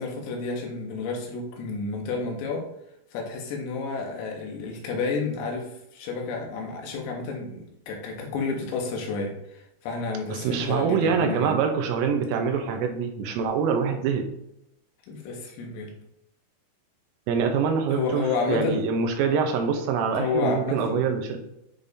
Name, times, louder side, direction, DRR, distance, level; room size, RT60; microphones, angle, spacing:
voice 1, 0.0-2.7 3.1-11.6 15.1-15.9 17.9-18.8 20.1-21.0, left 4 dB, 80° left, 1 dB, 4.0 m, -30 dB
voice 2, 10.3-14.2 17.3-21.4, right 6 dB, 80° right, 4 dB, 3.4 m, -25 dB
10.0 x 5.3 x 2.7 m, 0.83 s
omnidirectional pair, 5.9 m